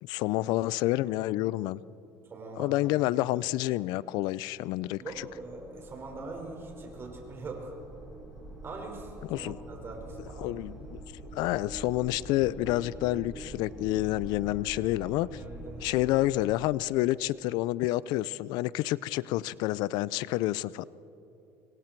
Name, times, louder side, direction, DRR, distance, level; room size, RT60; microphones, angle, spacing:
voice 1, 0.0-1.8 2.6-5.3 9.3-9.6 10.4-15.4 15.8-20.8, left 16 dB, 70° left, 19 dB, 0.4 m, -29 dB
voice 2, 2.3-2.8 5.0-7.8 8.6-10.6 15.3-15.9, right 3 dB, 35° right, 1 dB, 5.5 m, -42 dB
sound 1, 4.5-16.3, right 1 dB, 10° right, 6.7 m, -45 dB
26.0 x 23.0 x 4.6 m, 2.7 s
supercardioid pair, 110°, 7 cm